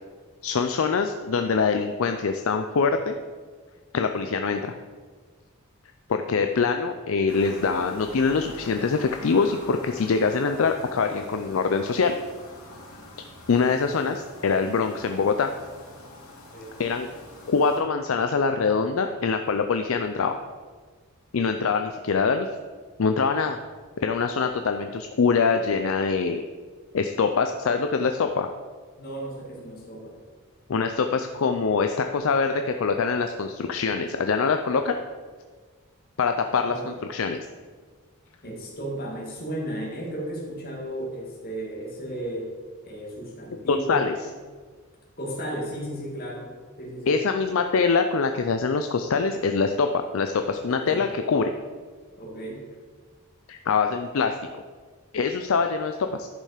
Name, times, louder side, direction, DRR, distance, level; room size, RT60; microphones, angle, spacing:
voice 1, 0.4-3.1 3.9-4.7 6.1-12.1 13.5-15.5 16.8-17.1 17.5-20.4 21.3-22.5 23.0-23.6 24.0-26.4 26.9-28.5 30.7-35.0 36.2-36.8 37.1-37.4 43.7-44.1 47.1-49.9 50.1-51.5 53.5-54.3 55.1-56.3, left 5 dB, 65° left, 6 dB, 0.5 m, -24 dB
sound 1, 7.3-17.8, left 1 dB, 85° left, 2.7 m, -45 dB
voice 2, 29.0-30.2 36.6-36.9 38.4-42.5 42.8-44.0 45.2-46.5 46.8-47.2 50.7-51.0 52.2-52.7, right 1 dB, 45° left, -2 dB, 2.3 m, -34 dB
10.5 x 5.5 x 5.0 m, 1.5 s
head